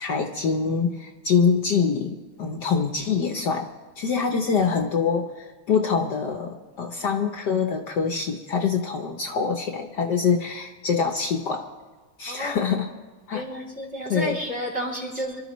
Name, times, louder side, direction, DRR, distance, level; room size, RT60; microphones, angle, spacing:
voice 1, 0.0-3.7 4.0-11.7 12.2-12.9 13.3-13.4 14.1-14.4, left 5 dB, 60° left, 4 dB, 1.3 m, -25 dB
voice 2, 12.3-12.7 13.3-15.4, equal, 30° right, -2 dB, 3.1 m, -31 dB
26.0 x 12.5 x 3.1 m, 1.3 s
omnidirectional pair, 2.2 m